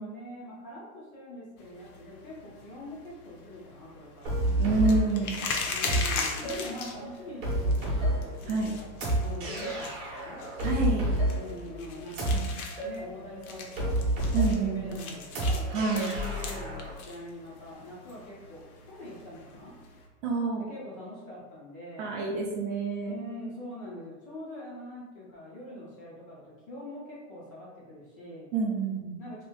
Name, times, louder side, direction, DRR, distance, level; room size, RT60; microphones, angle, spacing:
voice 1, 0.0-4.4 5.7-8.7 9.2-10.4 11.3-12.5 12.8-14.0 14.6-19.7 20.6-22.2 23.0-28.6 29.2-29.4, left 1 dB, 25° left, -6 dB, 0.4 m, -44 dB
sound 1, 1.6-20.1, left 4 dB, 75° left, 0.8 m, -40 dB
sound 2, 4.2-16.9, right 1 dB, 30° right, 0.8 m, -30 dB
voice 2, 4.6-5.4 8.5-8.7 10.6-11.1 12.3-12.5 14.3-15.0 15.7-16.1 20.2-20.6 22.0-23.2 28.5-29.2, right 3 dB, 55° right, -1 dB, 0.6 m, -28 dB
2.9 x 2.6 x 3.5 m, 1.2 s
supercardioid pair, 170°, 44 cm